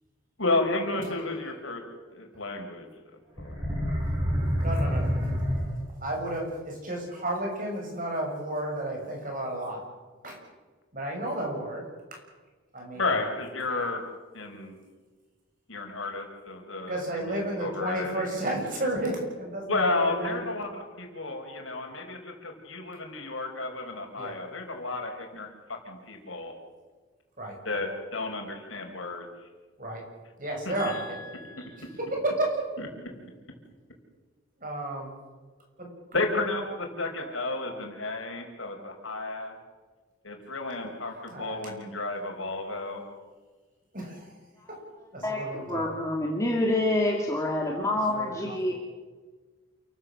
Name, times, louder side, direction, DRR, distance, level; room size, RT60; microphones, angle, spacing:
voice 1, 0.4-1.8 2.1-2.8 3.4-3.6 12.9-14.0 14.3-14.7 15.7-18.4 19.7-26.5 27.6-29.3 30.6-31.0 32.8-32.9 36.1-39.6 40.2-43.0, left 2 dB, 75° left, 3 dB, 5.0 m, -32 dB
sound 1, 3.4-6.2, equal, 25° right, 6.8 m, -27 dB
voice 2, 4.6-5.3 6.0-9.8 10.2-10.4 10.9-11.8 12.1-12.2 12.7-13.0 16.9-20.4 24.2-24.3 27.4-27.5 29.8-30.0 30.4-31.0 32.1-32.6 34.6-35.1 35.8-35.9 41.3-41.7 43.9-44.3 45.1-45.8 48.1-48.8, right 1 dB, 40° right, 1 dB, 6.8 m, -32 dB
voice 3, 30.8-31.6 44.6-44.7 45.2-48.7, left 1 dB, 15° left, -2 dB, 2.5 m, -28 dB
28.5 x 15.5 x 7.7 m, 1.4 s
head